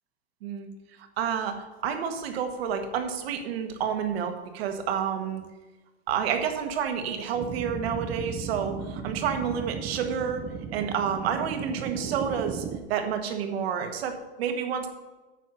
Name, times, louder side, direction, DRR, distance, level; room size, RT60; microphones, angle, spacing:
voice 1, 1.2-5.4 6.1-10.4 10.7-12.6 12.9-14.9, right 7 dB, 60° right, 6 dB, 1.7 m, -29 dB
sound 1, 7.3-12.8, right 6 dB, 30° right, 0.8 m, -36 dB
9.2 x 6.6 x 5.6 m, 1.1 s
hypercardioid pair, 135°, 35 cm